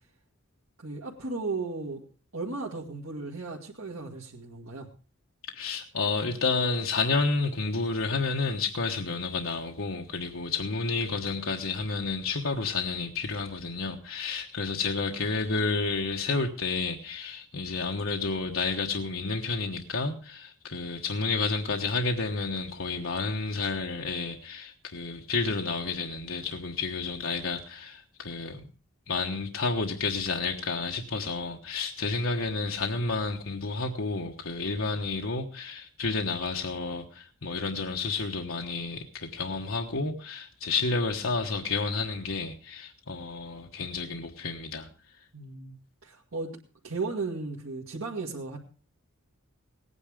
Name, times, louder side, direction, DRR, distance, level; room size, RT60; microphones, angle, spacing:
voice 1, 0.8-2.0 2.3-4.9 45.3-45.7 46.0-46.5 46.8-48.6, right 3 dB, 90° right, -2 dB, 2.0 m, -35 dB
voice 2, 5.5-28.7 29.1-44.9, left 4 dB, 75° left, 2 dB, 1.3 m, -30 dB
18.0 x 9.7 x 5.0 m, 0.36 s
head